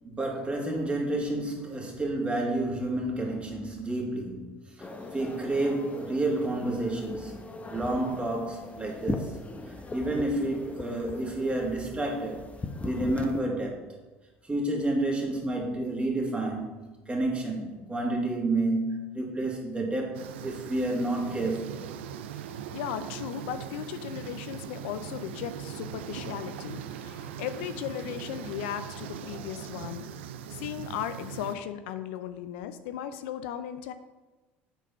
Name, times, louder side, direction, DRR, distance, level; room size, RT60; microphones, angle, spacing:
voice 1, 0.0-7.4 7.7-9.4 9.7-12.5 12.8-13.8 14.4-21.8, right 2 dB, 20° right, 0 dB, 2.2 m, -30 dB
sound 1, 4.8-13.4, left 2 dB, 20° left, 0.9 m, -39 dB
sound 2, 20.1-31.6, right 9 dB, 85° right, 0.4 m, -40 dB
voice 2, 22.7-30.0 30.5-33.9, left 10 dB, 75° left, 10 dB, 0.5 m, -36 dB
8.0 x 4.2 x 5.4 m, 1.2 s
hypercardioid pair, 75°, 6 cm